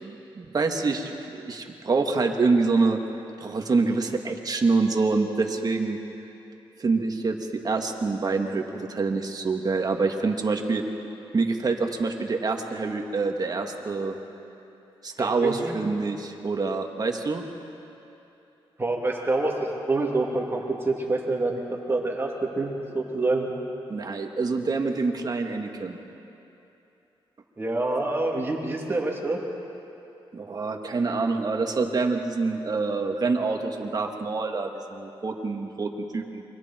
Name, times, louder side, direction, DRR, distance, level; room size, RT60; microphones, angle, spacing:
voice 1, 0.0-3.0 3.4-6.0 6.8-10.8 11.3-14.2 15.0-17.4 23.9-26.0 30.3-36.4, right 4 dB, 45° right, 3 dB, 2.0 m, -26 dB
voice 2, 15.2-15.7 18.8-21.6 21.9-23.5 27.6-29.4, right 2 dB, 25° right, -2 dB, 3.1 m, -26 dB
29.0 x 24.5 x 4.5 m, 2.9 s
cardioid pair, 100°, 10 cm